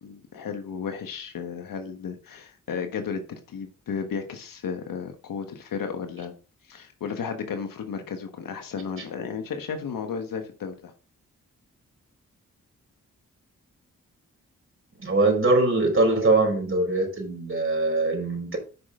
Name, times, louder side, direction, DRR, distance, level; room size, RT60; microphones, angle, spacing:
voice 1, 0.0-6.3 6.7-10.9, left 6 dB, 85° left, 6 dB, 1.4 m, -34 dB
voice 2, 15.0-18.6, right 2 dB, 40° right, 0 dB, 4.8 m, -22 dB
8.5 x 5.8 x 3.7 m, 0.35 s
supercardioid pair, 45°, 33 cm